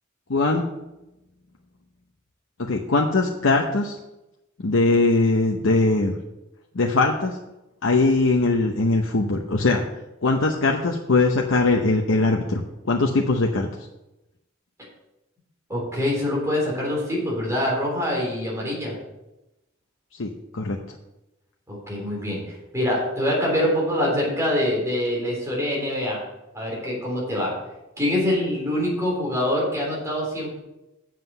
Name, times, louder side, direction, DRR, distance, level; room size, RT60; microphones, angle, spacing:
voice 1, 0.3-0.6 2.6-4.0 4.6-6.2 6.7-7.4 7.8-9.8 10.2-13.7 20.2-20.8, left 3 dB, 85° left, 0 dB, 0.8 m, -21 dB
voice 2, 15.7-18.9 21.7-22.4 22.7-26.2 26.5-27.5 28.0-30.6, left 1 dB, 15° right, -3 dB, 3.5 m, -24 dB
8.0 x 7.5 x 5.5 m, 0.95 s
head